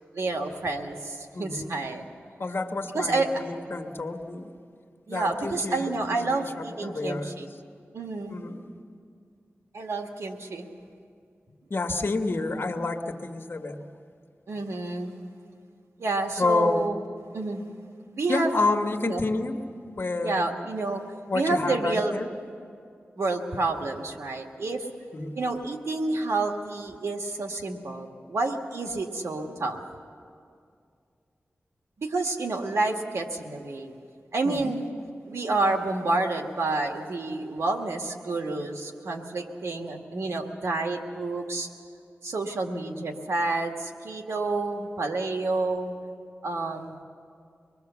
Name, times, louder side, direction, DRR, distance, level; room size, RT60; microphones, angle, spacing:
voice 1, 0.1-2.0 2.9-3.4 5.1-7.5 7.9-8.4 9.7-10.7 14.5-15.2 16.0-17.0 17.3-17.6 18.1-18.6 19.0-19.3 20.2-21.0 21.3-22.1 23.2-24.9 25.3-29.8 32.0-33.9 34.3-34.9 35.3-41.7 42.2-45.9 46.4-47.0, right 2 dB, 85° right, 3 dB, 1.8 m, -29 dB
voice 2, 1.3-1.7 2.4-4.5 5.1-7.3 8.3-8.6 11.7-13.8 16.4-16.8 18.3-19.6 20.0-20.4 21.3-22.3 25.1-25.4 34.4-34.8, left 3 dB, 55° left, 3 dB, 1.4 m, -29 dB
24.5 x 21.0 x 7.0 m, 2.3 s
wide cardioid pair, 75°, 5 cm